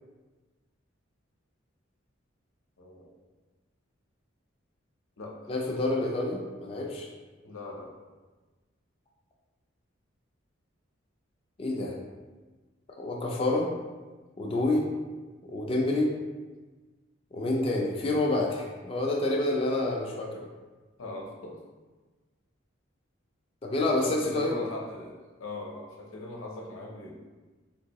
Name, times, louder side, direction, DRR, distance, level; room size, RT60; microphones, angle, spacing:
voice 1, 2.8-3.1 5.2-5.5 7.4-7.9 21.0-21.6 24.1-27.1, left 1 dB, 85° left, -1 dB, 0.7 m, -40 dB
voice 2, 5.5-7.1 11.6-12.0 13.0-13.7 14.4-14.8 15.4-16.1 17.3-20.4 23.6-24.6, left 2 dB, 30° left, -1 dB, 0.3 m, -28 dB
3.6 x 2.6 x 2.9 m, 1.3 s
head